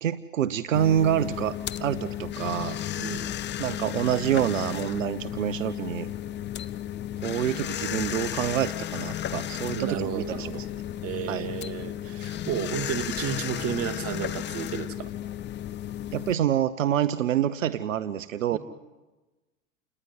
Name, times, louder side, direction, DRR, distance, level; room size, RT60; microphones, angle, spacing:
voice 1, 0.0-2.8 3.6-6.1 7.2-10.5 11.3-11.5 16.1-18.6, right 10 dB, 80° right, 15 dB, 1.0 m, -27 dB
sound 1, 0.7-16.4, left 11 dB, 30° left, 1.0 m, -34 dB
voice 2, 9.7-10.6 11.0-15.1 18.5-18.6, right 9 dB, 35° right, 9 dB, 2.5 m, -32 dB
29.0 x 20.0 x 9.5 m, 1.2 s
hypercardioid pair, 100°, 38 cm